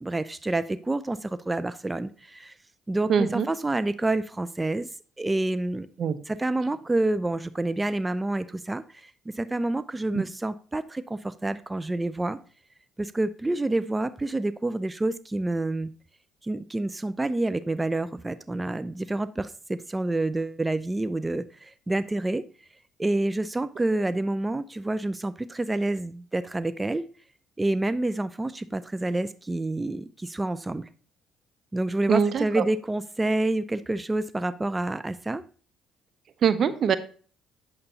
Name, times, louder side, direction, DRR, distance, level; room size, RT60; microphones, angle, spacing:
voice 1, 0.0-2.5 2.9-4.9 5.2-5.9 6.3-9.1 9.4-12.4 13.0-15.9 16.4-22.4 23.0-27.0 27.6-30.9 31.7-35.4, right 2 dB, 15° right, 14 dB, 0.5 m, -28 dB
voice 2, 3.1-3.5 6.0-6.2 10.1-10.2 32.1-32.6 36.4-37.0, right 7 dB, 55° right, 14 dB, 0.7 m, -23 dB
8.8 x 6.6 x 2.8 m, 0.40 s
hypercardioid pair, 55°, 0 cm